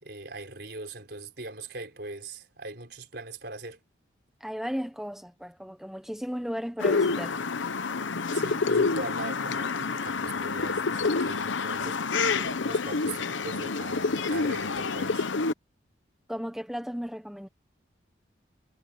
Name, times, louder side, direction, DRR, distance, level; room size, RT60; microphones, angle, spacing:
voice 1, 0.0-3.8 8.3-12.0 12.3-15.3, right 2 dB, 60° right, 4.8 m, -40 dB
voice 2, 4.4-7.4 16.3-17.5, equal, ahead, 1.0 m, -35 dB
sound 1, 6.8-15.5, left 4 dB, 90° left, 0.9 m, -28 dB
head